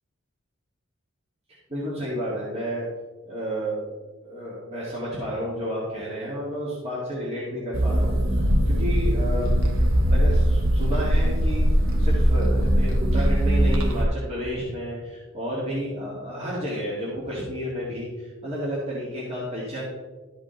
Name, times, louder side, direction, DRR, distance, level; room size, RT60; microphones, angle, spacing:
voice 1, 1.7-2.9 3.2-3.8 4.2-19.8, equal, 30° right, -7 dB, 1.9 m, -31 dB
sound 1, 7.7-14.1, equal, 85° right, 0.9 m, -21 dB
12.5 x 5.1 x 3.8 m, 1.3 s
head